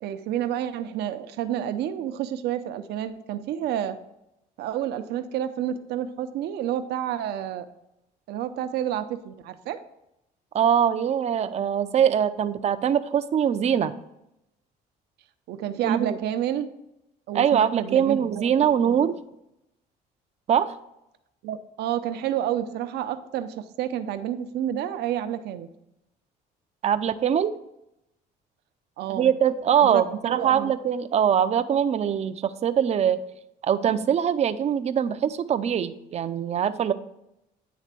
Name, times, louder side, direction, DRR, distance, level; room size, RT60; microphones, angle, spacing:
voice 1, 0.0-4.0 4.6-7.6 8.3-9.8 15.5-16.7 17.3-19.1 21.4-25.7 29.0-29.3 29.8-30.7, right 11 dB, 75° right, 9 dB, 0.7 m, -30 dB
voice 2, 10.5-13.9 15.8-16.2 17.3-19.2 20.5-20.8 26.8-27.5 29.1-33.2 33.6-36.9, right 8 dB, 40° right, 11 dB, 0.5 m, -23 dB
9.4 x 3.3 x 6.0 m, 0.85 s
cardioid pair, 110°, 17 cm